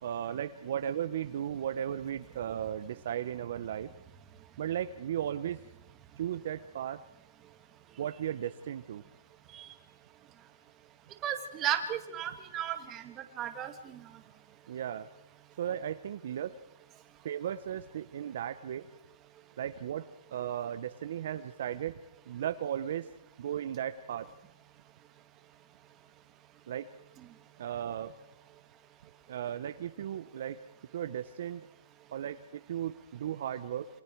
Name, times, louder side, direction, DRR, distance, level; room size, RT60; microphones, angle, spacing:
voice 1, 0.0-3.9 4.6-5.6 6.2-7.0 8.0-9.0 14.7-15.1 15.6-16.6 17.2-18.9 19.6-22.0 22.3-23.1 23.4-24.3 26.7-26.9 27.6-28.2 29.3-30.6 30.9-31.6 32.1-33.9, right 10 dB, 50° right, 11 dB, 0.9 m, -36 dB
voice 2, 11.2-13.0 13.4-14.0, right 10 dB, 20° right, 7 dB, 2.1 m, -34 dB
28.0 x 26.5 x 4.7 m, 0.80 s
hypercardioid pair, 165°, 0 cm